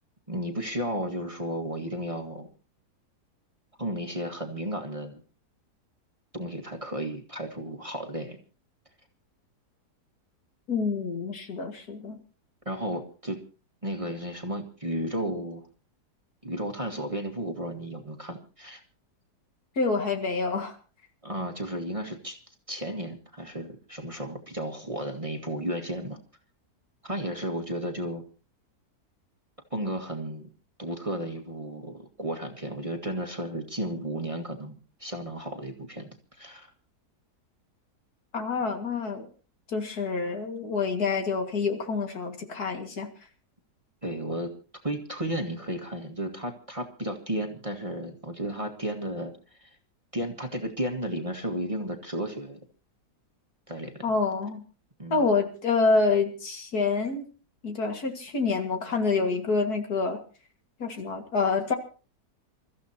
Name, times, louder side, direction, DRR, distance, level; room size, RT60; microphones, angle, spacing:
voice 1, 0.3-2.5 3.8-5.2 6.3-8.4 12.6-13.4 13.8-15.6 16.4-18.8 21.2-22.4 22.7-26.2 27.0-28.2 29.7-30.5 30.8-34.7 35.0-36.7 44.0-44.5 44.8-49.8 50.1-52.6 53.7-54.1 55.0-55.3, right 1 dB, 20° right, 3 dB, 1.7 m, -33 dB
voice 2, 10.7-12.2 19.8-20.8 38.3-39.3 39.7-43.1 54.0-54.6 55.1-57.3 57.6-60.2 60.8-61.7, left 4 dB, 65° left, 5 dB, 2.5 m, -27 dB
28.5 x 14.0 x 2.9 m, 0.36 s
omnidirectional pair, 1.8 m